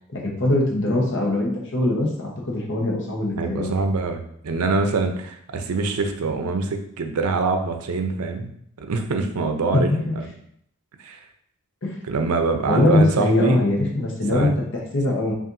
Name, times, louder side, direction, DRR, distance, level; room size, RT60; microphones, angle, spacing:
voice 1, 0.1-3.7 9.7-10.2 11.8-12.0 12.6-15.3, left 1 dB, 55° left, -1 dB, 0.9 m, -22 dB
voice 2, 3.4-8.5 8.8-9.9 10.2-10.3 11.0-11.2 12.1-13.7 14.3-14.5, right 3 dB, 75° right, 6 dB, 0.5 m, -24 dB
5.5 x 2.5 x 2.6 m, 0.69 s
head